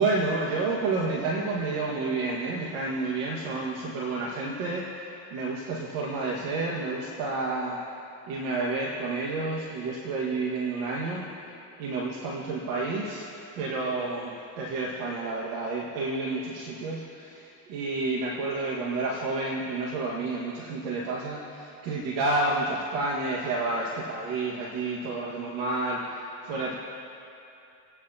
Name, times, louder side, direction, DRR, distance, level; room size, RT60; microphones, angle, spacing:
voice 1, 0.0-7.9 8.2-11.3 11.8-13.3 13.6-26.7, right 3 dB, 90° right, -3 dB, 1.8 m, -30 dB
28.5 x 9.5 x 2.8 m, 2.7 s
supercardioid pair, 90°, 47 cm